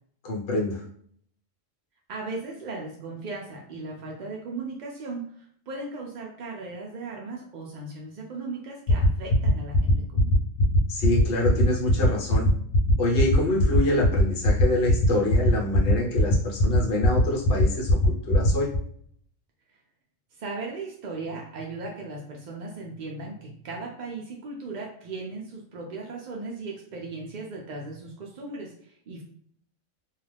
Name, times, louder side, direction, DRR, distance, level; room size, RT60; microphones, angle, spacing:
voice 1, 0.2-0.8 10.9-12.5 13.0-18.7, left 1 dB, 55° left, -2 dB, 1.0 m, -26 dB
voice 2, 2.1-10.4 20.3-29.2, right 3 dB, 60° right, -1 dB, 0.5 m, -37 dB
sound 1, 8.9-18.8, left 1 dB, 85° left, 1.0 m, -20 dB
2.4 x 2.3 x 3.3 m, 0.63 s
omnidirectional pair, 1.3 m